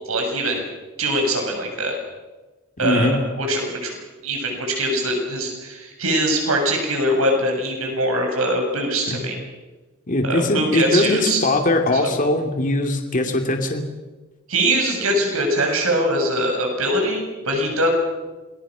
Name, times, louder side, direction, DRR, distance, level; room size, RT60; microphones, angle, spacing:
voice 1, 0.1-0.6 1.0-2.0 2.8-4.0 4.2-9.4 10.2-11.4 11.9-12.1 14.5-17.9, right 1 dB, 80° right, 2 dB, 6.9 m, -22 dB
voice 2, 2.8-3.2 9.1-9.2 10.1-13.8, left 2 dB, 40° left, 4 dB, 2.6 m, -21 dB
27.5 x 21.0 x 6.3 m, 1.2 s
head